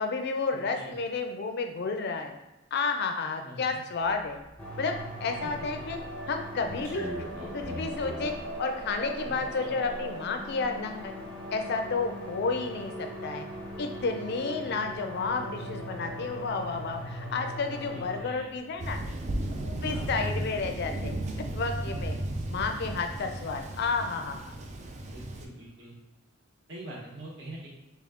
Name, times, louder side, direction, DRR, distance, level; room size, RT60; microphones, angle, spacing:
voice 1, 0.0-2.4 2.7-4.4 4.8-6.0 6.3-7.1 7.5-11.1 11.5-13.5 13.8-19.0 19.6-21.2 21.5-22.2 22.5-24.5, left 4 dB, 55° left, 5 dB, 0.4 m, -31 dB
voice 2, 3.4-3.8 5.4-5.5 9.1-9.9 17.8-18.5 19.8-20.1 25.0-26.0 26.7-27.7, right 1 dB, 65° right, -4 dB, 1.1 m, -44 dB
sound 1, 4.0-19.5 19.8-21.1, equal, 15° right, 1.0 m, -46 dB
sound 2, 4.6-18.2, equal, 5° left, 0.6 m, -40 dB
Thunder, 18.8-25.5, right 1 dB, 35° right, 0.4 m, -34 dB
3.5 x 2.3 x 3.7 m, 0.99 s
head